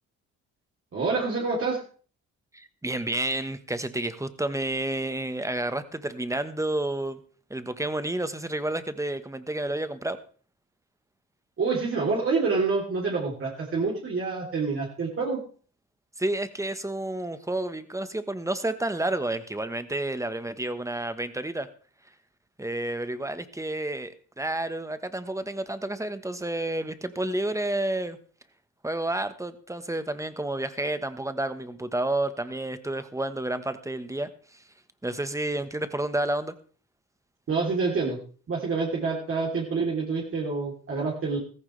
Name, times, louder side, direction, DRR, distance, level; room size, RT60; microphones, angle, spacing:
voice 1, 0.9-1.8 11.6-15.4 37.5-38.2 38.5-41.4, right 4 dB, 45° right, -3 dB, 3.5 m, -27 dB
voice 2, 2.5-7.2 7.5-10.2 16.2-21.7 22.6-28.2 28.8-34.3 35.0-36.5, right 1 dB, 10° right, 11 dB, 1.3 m, -30 dB
14.5 x 14.5 x 3.4 m, 0.42 s
cardioid pair, 90°, 30 cm